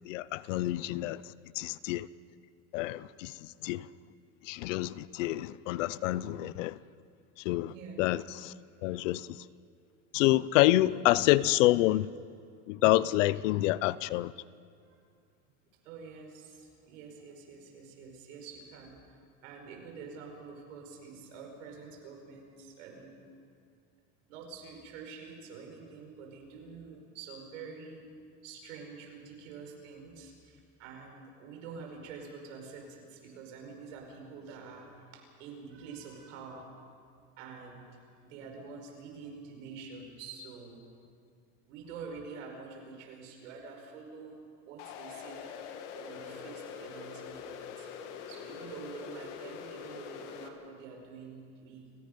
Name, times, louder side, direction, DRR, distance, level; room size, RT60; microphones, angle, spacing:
voice 1, 0.1-1.2 1.6-2.1 2.7-3.3 3.6-3.9 4.4-6.8 7.4-7.7 8.0-8.5 8.8-9.4 10.1-12.1 12.7-14.3, left 16 dB, 85° left, 0.7 m, -27 dB
voice 2, 7.7-8.0 10.9-11.0 14.8-14.9 15.8-19.2 19.4-23.2 24.3-28.1 28.4-36.7 37.4-40.8 41.7-44.4 44.7-45.5 45.9-47.9 48.3-51.9, right 5 dB, 80° right, 5.1 m, -47 dB
sound 1, 44.8-50.5, left 7 dB, 70° left, 2.0 m, -44 dB
29.5 x 17.0 x 5.3 m
supercardioid pair, 160°, 37 cm